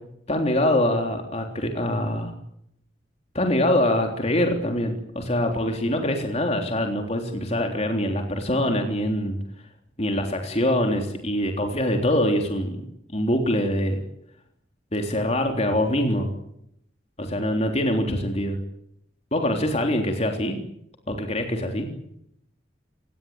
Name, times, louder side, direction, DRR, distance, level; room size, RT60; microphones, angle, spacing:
voice 1, 0.3-2.3 3.3-9.4 10.0-12.8 13.1-14.0 14.9-16.3 17.2-18.6 19.3-20.6 21.1-21.9, left 1 dB, 40° left, 3 dB, 3.5 m, -24 dB
29.0 x 18.5 x 8.9 m, 0.75 s
head